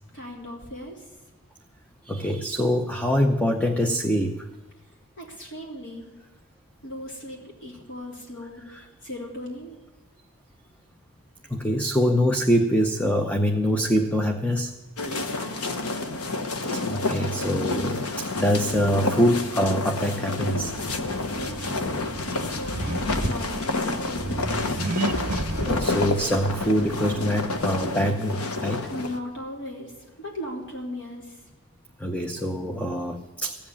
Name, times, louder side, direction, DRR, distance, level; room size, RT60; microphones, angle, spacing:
voice 1, 0.1-1.0 5.2-6.1 6.8-9.8 15.1-16.1 21.3-21.8 22.4-24.5 28.9-29.9 30.2-31.4, left 1 dB, 55° left, -2 dB, 3.9 m, -37 dB
voice 2, 2.0-4.5 11.5-14.7 16.7-20.7 25.6-28.9 32.0-33.6, equal, 5° left, 4 dB, 0.7 m, -24 dB
sound 1, 15.0-29.2, left 3 dB, 75° left, 1.3 m, -29 dB
Accelerating revving vroom, 20.6-27.9, right 2 dB, 40° right, 1.0 m, -33 dB
15.5 x 7.9 x 9.8 m, 1.2 s
head